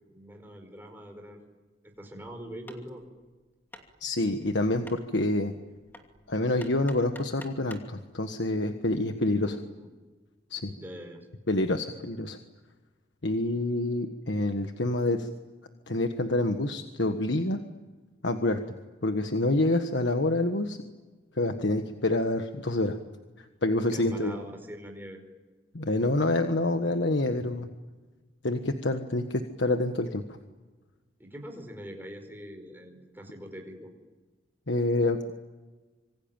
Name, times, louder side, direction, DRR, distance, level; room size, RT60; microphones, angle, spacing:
voice 1, 0.1-1.4 1.8-3.0 9.4-9.9 10.7-11.3 23.9-25.2 31.2-33.9, equal, 10° right, 3 dB, 5.1 m, -43 dB
Hammer, 2.7-8.0, left 1 dB, 10° left, 2.7 m, -51 dB
voice 2, 4.0-5.5 6.3-9.6 10.5-10.7 11.5-12.4 13.2-15.3 15.9-17.6 18.2-18.6 19.0-20.8 21.3-23.0 23.6-24.3 25.7-27.7 28.4-30.2 34.7-35.2, left 2 dB, 70° left, 6 dB, 1.5 m, -27 dB
26.5 x 25.0 x 9.0 m, 1.3 s
head